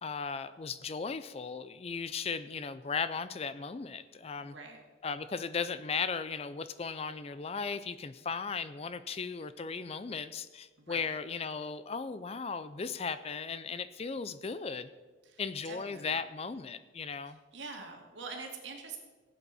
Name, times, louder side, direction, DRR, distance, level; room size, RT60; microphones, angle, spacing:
voice 1, 0.0-4.6 5.0-14.9 15.4-17.4, left 5 dB, 30° left, 13 dB, 0.4 m, -36 dB
voice 2, 4.4-4.8 10.8-11.1 15.2-16.2 17.5-19.0, right 4 dB, 70° right, 2 dB, 2.0 m, -45 dB
16.5 x 8.1 x 4.2 m, 1.4 s
head